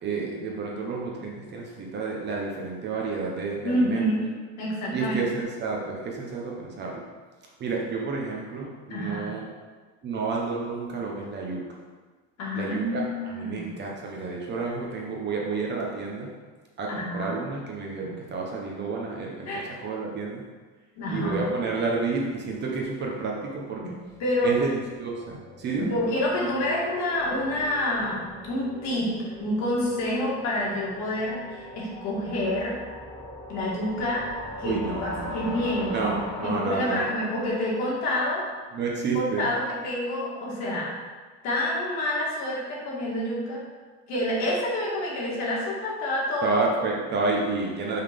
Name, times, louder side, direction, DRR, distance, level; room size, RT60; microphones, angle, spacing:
voice 1, 0.0-4.1 4.9-7.0 7.6-9.4 10.0-11.6 12.5-16.3 16.8-20.4 21.1-23.9 24.4-25.9 34.6-35.3 35.9-37.1 38.7-39.5 46.4-48.0, right 4 dB, 30° right, -2 dB, 0.8 m, -30 dB
voice 2, 3.6-4.3 4.6-5.2 8.9-9.3 12.4-13.7 16.9-17.4 19.5-19.7 21.0-21.4 23.8-23.9 24.2-24.5 25.8-32.7 33.5-34.2 34.6-38.4 39.1-40.9 41.4-43.6 44.1-46.8, left 1 dB, 55° left, -5 dB, 1.9 m, -28 dB
sound 1, 23.6-38.6, left 1 dB, 10° left, 1.4 m, -41 dB
5.5 x 3.9 x 5.1 m, 1.4 s
cardioid pair, 175°, 33 cm